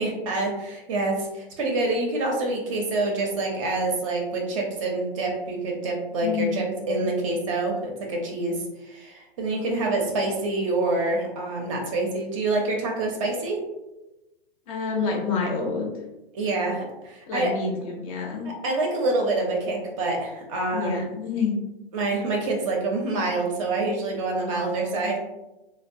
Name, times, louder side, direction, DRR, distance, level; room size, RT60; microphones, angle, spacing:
voice 1, 0.0-8.6 8.8-13.6 16.3-17.5 18.4-21.1 21.9-25.2, right 2 dB, 30° right, 0 dB, 0.5 m, -26 dB
voice 2, 6.2-7.1 9.5-9.9 14.7-15.9 17.3-18.5 20.7-21.6 24.5-25.1, left 4 dB, 35° left, 0 dB, 0.5 m, -29 dB
2.7 x 2.0 x 2.5 m, 1.0 s
hypercardioid pair, 135°, 31 cm